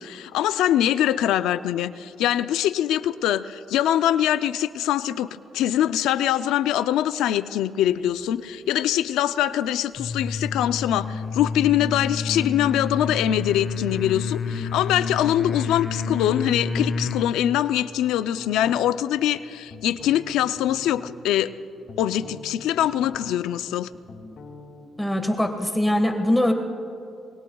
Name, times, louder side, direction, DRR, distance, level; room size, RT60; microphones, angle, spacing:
voice 1, 0.0-5.3 5.5-21.5 22.0-23.9, left 11 dB, 90° left, 13 dB, 0.4 m, -23 dB
sound 1, 10.0-17.4, left 5 dB, 45° left, 1.0 m, -29 dB
sound 2, 18.3-19.2 19.7-21.1 21.6-23.5 23.8-24.9, left 4 dB, 60° left, 2.1 m, -42 dB
voice 2, 25.0-26.5, left 1 dB, 5° left, 4 dB, 1.5 m, -22 dB
24.5 x 24.5 x 2.3 m, 2.6 s
cardioid pair, 90°, 0 cm